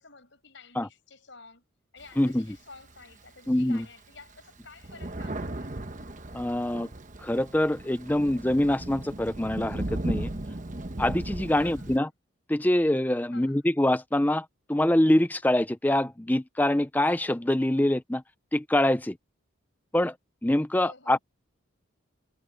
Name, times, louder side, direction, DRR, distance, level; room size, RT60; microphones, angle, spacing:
voice 1, 0.0-1.6 1.9-6.1 11.6-12.1 13.3-13.6 20.8-21.2, left 4 dB, 60° left, 6.7 m, -51 dB
Thunder, 2.0-3.3 3.8-3.9 4.2-12.0, right 1 dB, 35° right, 1.1 m, -36 dB
voice 2, 3.5-3.9 6.3-6.9 7.2-10.3 11.0-12.1 12.5-18.2 18.5-19.2 19.9-20.1 20.4-21.2, left 1 dB, 10° left, 0.5 m, -25 dB
head